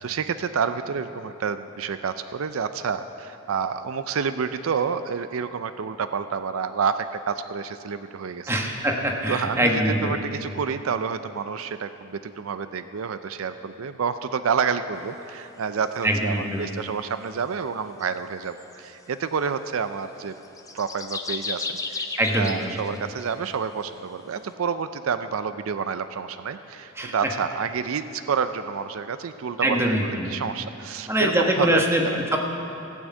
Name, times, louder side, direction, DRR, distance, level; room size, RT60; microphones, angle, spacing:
voice 1, 0.0-8.5 9.3-20.3 20.7-22.1 22.4-32.4, right 6 dB, 85° right, 11 dB, 0.4 m, -29 dB
voice 2, 8.5-10.2 16.0-16.7 22.2-22.8 27.0-27.1 29.6-30.3 31.1-32.4, right 1 dB, 15° right, 1 dB, 1.2 m, -23 dB
sound 1, 18.0-18.1 18.6-18.7 20.4-23.3, left 3 dB, 15° left, 0.6 m, -33 dB
15.5 x 6.3 x 8.2 m, 2.8 s
head